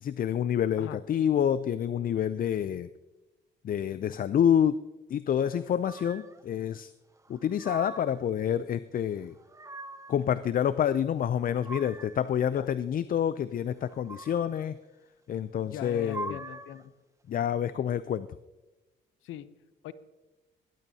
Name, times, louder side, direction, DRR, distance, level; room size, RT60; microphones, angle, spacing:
voice 1, 0.0-2.9 3.6-4.8 5.1-6.9 7.3-9.3 10.1-14.8 15.3-16.4 17.3-18.3, left 9 dB, 45° left, 14 dB, 0.4 m, -28 dB
sound 1, 5.8-6.4 7.2-8.3 9.2-10.2 11.2-12.3 13.8-14.7 15.8-16.8, right 2 dB, 15° right, 0.9 m, -43 dB
voice 2, 15.7-16.9 19.2-19.5 19.8-19.9, left 11 dB, 85° left, 14 dB, 0.7 m, -41 dB
18.5 x 12.5 x 2.8 m, 1.1 s
cardioid pair, 90°, 20 cm